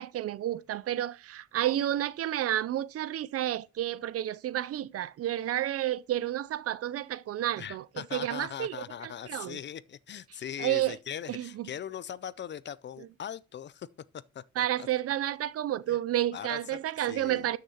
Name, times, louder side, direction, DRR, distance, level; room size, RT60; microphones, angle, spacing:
voice 1, 0.0-9.6 10.6-11.0 11.3-11.7 13.0-13.1 14.6-17.6, right 12 dB, 50° right, 0.4 m, -31 dB
voice 2, 7.6-13.9 14.3-14.9 15.9-16.0 16.3-16.8 17.1-17.5, left 9 dB, 40° left, 0.4 m, -40 dB
13.0 x 6.5 x 2.8 m
cardioid pair, 90°, 30 cm